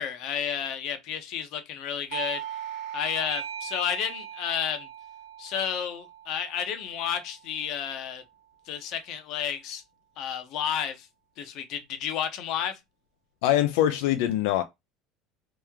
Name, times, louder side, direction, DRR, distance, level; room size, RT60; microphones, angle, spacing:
voice 1, 0.0-2.6 2.9-4.9 5.4-8.2 8.7-9.8 10.2-11.1 11.4-12.8, left 8 dB, 45° left, 0.8 m, -31 dB
Doorbell, 2.1-7.4, right 10 dB, 65° right, 0.9 m, -39 dB
voice 2, 13.4-14.6, left 12 dB, 75° left, 0.4 m, -23 dB
3.3 x 3.1 x 3.5 m
cardioid pair, 180°, 0 cm